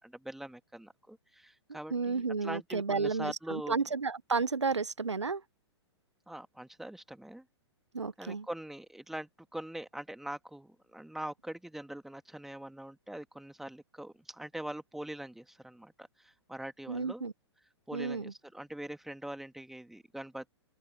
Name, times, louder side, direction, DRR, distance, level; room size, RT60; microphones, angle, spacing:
voice 1, 0.0-3.8 6.3-7.5 8.2-17.3 17.9-20.5, right 1 dB, ahead, 2.3 m, -43 dB
voice 2, 1.9-5.4 7.9-8.5 16.9-17.3 17.9-18.3, right 4 dB, 80° right, 1.1 m, -32 dB
figure-of-eight pair, 110°, 15 cm